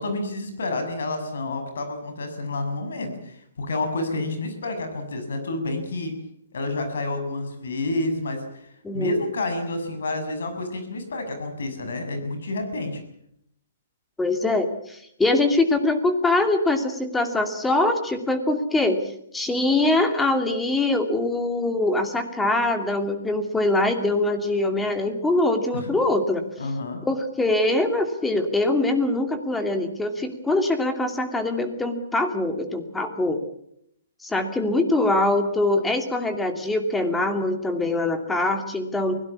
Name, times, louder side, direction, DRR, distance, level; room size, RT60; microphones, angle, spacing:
voice 1, 0.0-6.2 6.5-13.0 25.7-26.0 26.6-27.0, left 2 dB, 80° left, 7 dB, 6.9 m, -29 dB
voice 2, 14.2-19.0 19.3-26.4 27.1-33.4 34.2-39.2, left 2 dB, 5° left, 7 dB, 2.5 m, -23 dB
23.5 x 17.0 x 8.6 m, 0.73 s
hypercardioid pair, 155°, 0 cm